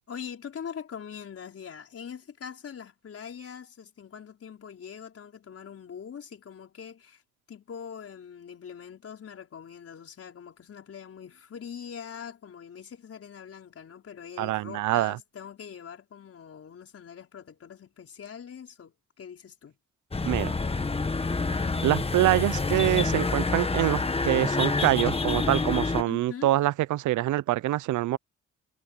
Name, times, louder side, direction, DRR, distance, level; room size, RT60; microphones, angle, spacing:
voice 1, 0.1-7.2 7.5-19.8 26.1-26.5, left 7 dB, 50° left, 5.0 m, -43 dB
voice 2, 14.4-15.2 20.2-20.6 21.8-28.2, right 15 dB, 80° right, 0.7 m, -25 dB
sound 1, 20.1-26.0, left 3 dB, 20° left, 1.5 m, -27 dB
cardioid pair, 90°, 30 cm